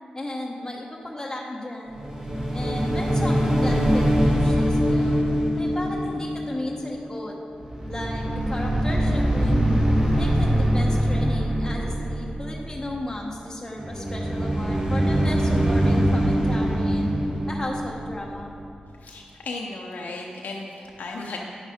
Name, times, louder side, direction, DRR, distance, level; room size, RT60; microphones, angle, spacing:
voice 1, 0.1-2.0 2.5-5.2 5.6-7.4 7.9-9.8 10.2-17.2 17.5-18.5, left 1 dB, 15° left, -2 dB, 0.9 m, -34 dB
sound 1, 1.9-7.3 7.6-12.8 13.8-18.6, equal, 20° right, 1.5 m, -23 dB
voice 2, 19.0-21.4, left 3 dB, 80° left, -1 dB, 0.6 m, -35 dB
9.2 x 5.9 x 4.2 m, 2.6 s
cardioid pair, 45°, 3 cm